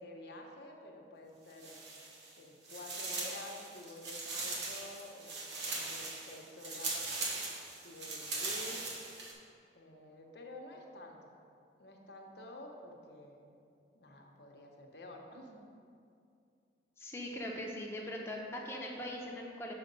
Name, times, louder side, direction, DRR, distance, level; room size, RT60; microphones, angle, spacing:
voice 1, 0.0-1.8 2.4-7.1 7.8-9.1 9.7-11.3 11.8-13.6 13.9-15.7, left 1 dB, 70° left, 1 dB, 0.9 m, -50 dB
sound 1, 1.5-2.4 2.6-9.3, right 3 dB, 80° right, 1.2 m, -40 dB
voice 2, 17.0-19.7, left 1 dB, 15° left, -2 dB, 0.8 m, -41 dB
6.4 x 5.1 x 5.2 m, 2.4 s
head